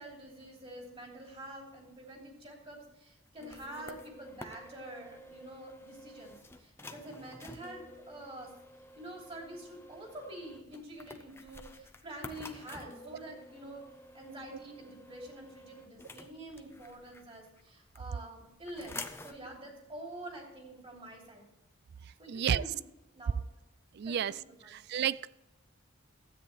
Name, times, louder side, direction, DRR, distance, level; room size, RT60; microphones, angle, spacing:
voice 1, 0.0-8.5 9.0-13.8 14.1-21.4 22.2-22.8 23.1-23.4 24.0-24.7, right 1 dB, 30° right, 3.0 m, -47 dB
sound 1, 3.3-17.6 18.0-19.4, left 2 dB, 10° left, 0.6 m, -50 dB
voice 2, 22.3-22.6 23.9-25.3, right 9 dB, 55° right, 0.3 m, -32 dB
13.0 x 8.8 x 3.3 m
head